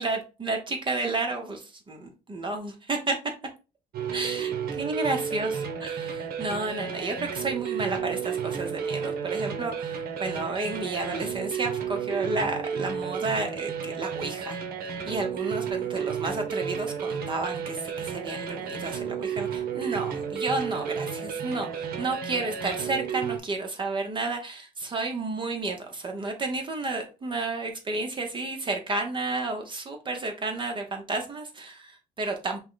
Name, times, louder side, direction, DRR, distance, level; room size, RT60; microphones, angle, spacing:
voice 1, 0.0-3.1 4.1-14.6 14.8-32.6, right 3 dB, 30° right, 0.9 m, -31 dB
sound 1, 3.9-23.4, right 7 dB, 65° right, 0.9 m, -32 dB
5.6 x 2.2 x 3.8 m
cardioid pair, 110°, 17 cm